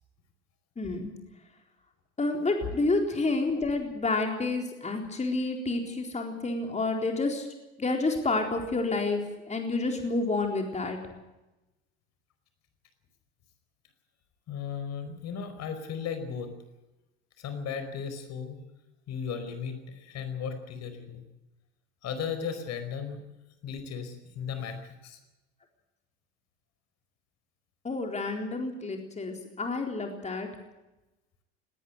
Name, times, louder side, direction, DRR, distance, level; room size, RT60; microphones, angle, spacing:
voice 1, 0.8-1.1 2.2-7.5 7.8-9.2 9.5-11.0 27.8-30.5, left 3 dB, 20° left, 3 dB, 4.1 m, -29 dB
voice 2, 14.5-16.5 17.4-18.6 19.1-21.2 22.0-23.2 23.6-25.2, left 7 dB, 50° left, 9 dB, 4.9 m, -36 dB
19.0 x 19.0 x 8.0 m, 1.0 s
hypercardioid pair, 70°, 33 cm